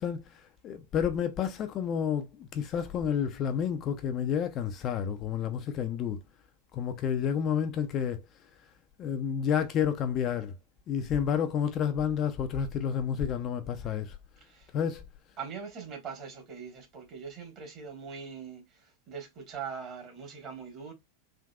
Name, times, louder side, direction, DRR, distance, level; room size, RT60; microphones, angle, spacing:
voice 1, 0.0-6.2 6.7-8.2 9.0-10.5 10.9-14.2 14.7-15.0, left 8 dB, 35° left, 0.4 m, -30 dB
voice 2, 14.4-14.7 15.4-20.9, right 6 dB, 35° right, 1.4 m, -42 dB
3.6 x 2.6 x 2.3 m
figure-of-eight pair, 90°, 0 cm